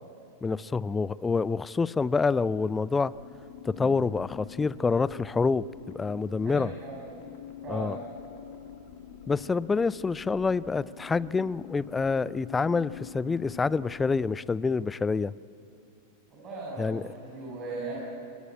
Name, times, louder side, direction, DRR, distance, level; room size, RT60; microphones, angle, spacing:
voice 1, 0.4-3.1 3.6-5.7 5.9-6.7 7.7-8.0 9.3-15.3 16.8-17.0, left 4 dB, 15° left, 20 dB, 0.5 m, -27 dB
sound 1, 3.1-14.8, left 10 dB, 45° left, 1.7 m, -46 dB
voice 2, 6.4-7.1 7.6-8.0 16.3-18.0, right 3 dB, 30° right, -5 dB, 7.4 m, -38 dB
22.5 x 20.5 x 8.7 m, 2.7 s
figure-of-eight pair, 90°, 0 cm